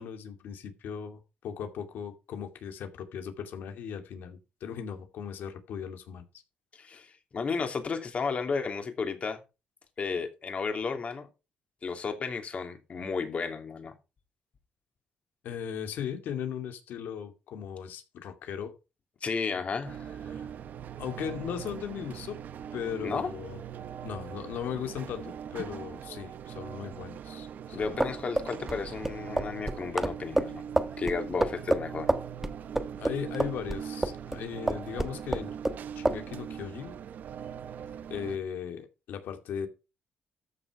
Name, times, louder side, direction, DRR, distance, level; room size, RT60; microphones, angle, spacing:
voice 1, 0.0-6.2 15.4-18.7 19.5-19.6 20.3-20.4 21.0-22.4 22.7-23.6 24.0-28.0 33.0-35.5 36.0-36.9 38.1-39.7, left 8 dB, 75° left, 2.4 m, -37 dB
voice 2, 6.7-7.1 7.3-9.4 10.0-11.3 11.8-13.9 19.2-20.4 23.0-23.3 27.7-30.6 31.0-32.1, left 5 dB, 40° left, 2.9 m, -33 dB
sound 1, 19.8-38.4, right 8 dB, 60° right, 0.8 m, -41 dB
sound 2, 27.8-34.4 34.7-35.8 36.1-36.2, right 1 dB, 10° right, 1.1 m, -28 dB
13.5 x 6.7 x 4.8 m
cardioid pair, 100°, 3 cm